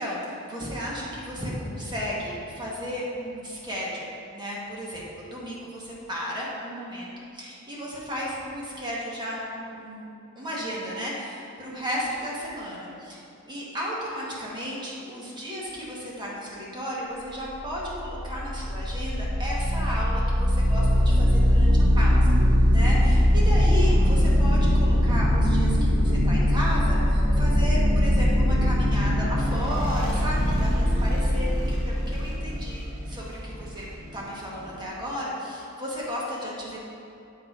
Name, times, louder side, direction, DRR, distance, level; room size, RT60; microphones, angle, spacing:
voice 1, 0.0-10.1 10.4-22.4 22.7-36.8, equal, 20° right, -5 dB, 1.2 m, -34 dB
sound 1, 17.4-34.8, equal, 85° right, 1.2 m, -22 dB
7.4 x 4.4 x 5.2 m, 2.7 s
head